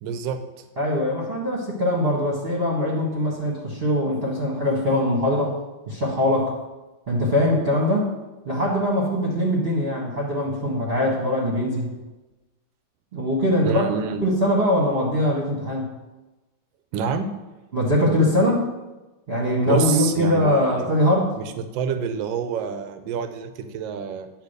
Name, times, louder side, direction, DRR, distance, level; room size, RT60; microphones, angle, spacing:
voice 1, 0.0-0.6 13.6-14.2 16.9-17.3 19.7-20.9 21.3-24.3, right 6 dB, 80° right, 9 dB, 1.4 m, -28 dB
voice 2, 0.8-5.6 5.9-6.5 7.1-8.1 8.4-11.9 13.1-13.8 14.2-15.9 17.7-18.7 19.3-21.3, left 1 dB, 35° right, -5 dB, 1.4 m, -22 dB
9.9 x 3.4 x 6.6 m, 1.1 s
omnidirectional pair, 2.1 m